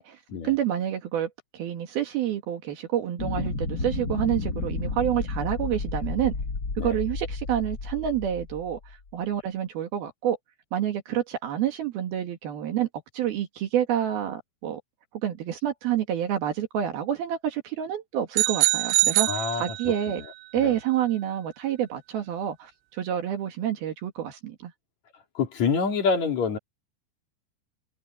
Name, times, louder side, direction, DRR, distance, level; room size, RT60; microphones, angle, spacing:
voice 1, 0.4-6.3 6.8-8.8 9.1-10.4 10.7-12.9 13.1-14.8 15.2-20.2 20.5-24.7, right 10 dB, 65° right, 3.4 m, -28 dB
sound 1, 3.2-8.9, left 3 dB, 60° left, 1.0 m, -32 dB
sound 2, 18.3-20.2, right 23 dB, 80° right, 3.0 m, -24 dB
voice 2, 19.3-19.7 20.5-20.7 25.3-26.6, left 5 dB, 45° left, 3.4 m, -26 dB
omnidirectional pair, 5.1 m